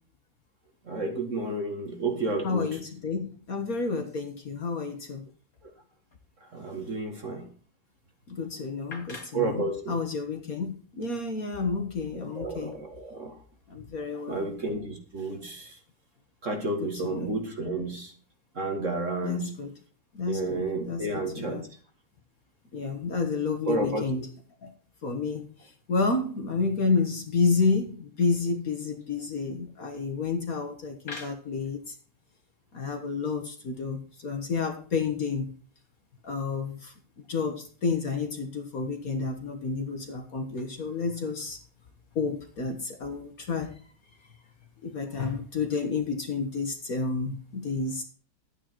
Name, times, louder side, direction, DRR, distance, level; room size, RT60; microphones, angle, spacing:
voice 1, 0.9-2.7 6.5-7.5 9.3-10.0 12.2-13.4 14.3-15.7 16.4-18.1 18.6-19.6 20.3-21.6 23.7-24.1, right 2 dB, 40° right, 4 dB, 1.9 m, -31 dB
voice 2, 2.4-5.3 8.3-12.7 13.7-14.5 16.8-17.3 19.2-19.7 20.1-21.6 22.7-24.3 24.6-24.7 25.0-32.0 32.7-35.5 36.2-36.9 37.3-41.6 42.2-43.8 44.8-48.0, left 4 dB, 45° left, 5 dB, 1.7 m, -30 dB
12.0 x 9.0 x 4.5 m, 0.42 s
omnidirectional pair, 2.3 m